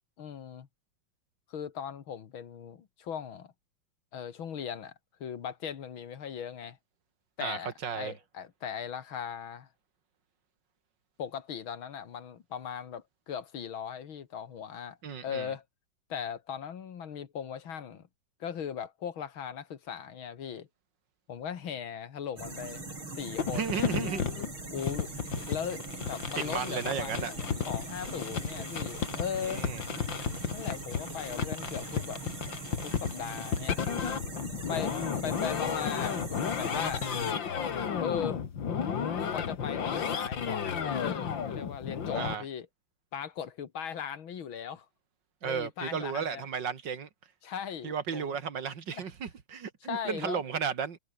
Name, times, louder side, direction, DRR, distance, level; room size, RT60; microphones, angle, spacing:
voice 1, 0.2-0.7 1.5-3.5 4.1-4.9 5.2-6.8 7.4-9.7 11.2-15.0 15.2-15.6 16.1-18.1 18.4-20.7 21.3-22.8 23.1-23.9 24.7-25.1 25.5-27.4 27.7-29.7 30.5-32.2 32.8-33.8 34.7-35.0 35.2-36.2 36.5-37.0 38.0-38.4 39.3-42.7 43.1-44.9 45.4-46.4 47.4-48.3 48.9-49.0 49.8-50.4, left 8 dB, 85° left, 2.5 m, -38 dB
voice 2, 7.4-8.2 15.0-15.5 23.5-24.2 26.4-27.3 29.4-29.8 42.1-42.4 45.4-47.1 47.8-51.0, right 7 dB, 60° right, 2.6 m, -34 dB
sound 1, 22.4-37.3, right 2 dB, 90° right, 8.4 m, -41 dB
sound 2, 23.4-42.3, left 7 dB, 70° left, 2.6 m, -33 dB
omnidirectional pair, 2.2 m